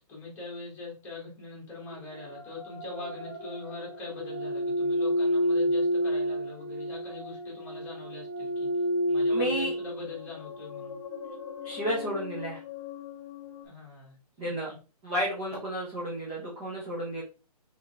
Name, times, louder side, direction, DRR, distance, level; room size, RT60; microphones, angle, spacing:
voice 1, 0.1-11.0 13.6-14.2 14.4-14.8, left 4 dB, 10° left, -4 dB, 1.3 m, -42 dB
sound 1, 1.8-13.6, equal, 35° left, 1.0 m, -31 dB
voice 2, 9.3-9.7 11.6-12.6 14.4-14.7 15.0-17.2, equal, 10° right, -6 dB, 0.4 m, -32 dB
3.6 x 3.2 x 3.4 m, 0.33 s
hypercardioid pair, 170°, 20 cm